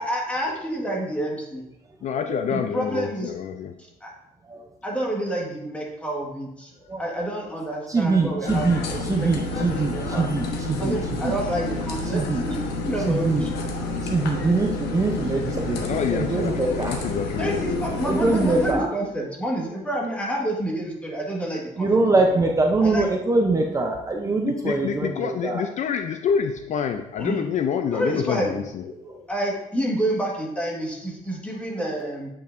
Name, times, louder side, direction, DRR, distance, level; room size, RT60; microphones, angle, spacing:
voice 1, 0.0-1.6 2.5-3.3 4.0-4.1 4.8-6.7 7.0-10.3 10.7-13.6 17.3-22.5 22.8-23.1 27.2-27.4 27.9-28.6 29.3-32.3, right 1 dB, 10° left, -2 dB, 1.5 m, -29 dB
voice 2, 2.0-3.7 15.8-17.8 24.4-29.3, left 7 dB, 45° left, 6 dB, 0.4 m, -27 dB
voice 3, 7.9-8.8 9.1-10.9 11.2-11.3 12.1-12.4 13.0-13.5 14.0-17.0 18.0-18.9 21.8-25.6 29.0-29.1, right 3 dB, 20° right, 1 dB, 0.6 m, -23 dB
sound 1, 8.5-18.7, left 2 dB, 80° left, 1.0 m, -29 dB
8.6 x 5.5 x 2.6 m, 0.87 s
cardioid pair, 130°, 16 cm